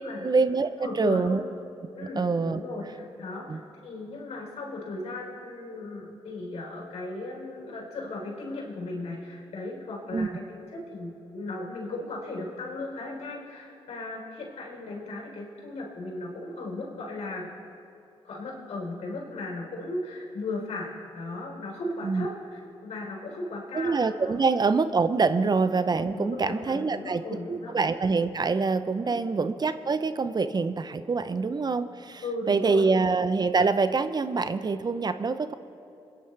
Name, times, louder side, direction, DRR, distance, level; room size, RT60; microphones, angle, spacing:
voice 1, 0.2-1.4 2.2-2.6 3.5-3.6 10.1-10.3 22.0-22.3 23.7-27.2 27.5-35.5, right 4 dB, 35° right, 12 dB, 0.6 m, -25 dB
voice 2, 0.8-1.4 1.9-17.5 18.2-24.5 25.3-25.5 26.1-27.8 29.0-29.2 32.2-32.8, left 2 dB, 70° left, -2 dB, 3.9 m, -36 dB
25.5 x 10.0 x 3.3 m, 2.7 s
supercardioid pair, 55°, 12 cm